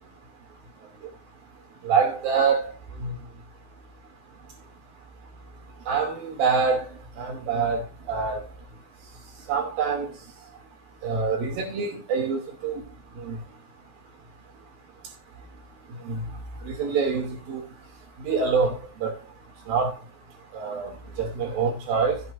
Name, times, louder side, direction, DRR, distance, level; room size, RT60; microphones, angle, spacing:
voice 1, 1.8-2.7 3.0-3.2 5.9-6.9 7.2-8.4 9.5-10.1 11.0-12.7 13.2-13.4 16.1-16.2 16.7-17.6 18.2-19.1 19.7-19.9 20.5-20.9 21.2-22.2, right 5 dB, 70° right, 4.4 m, -25 dB
15.0 x 8.9 x 2.6 m
omnidirectional pair, 4.4 m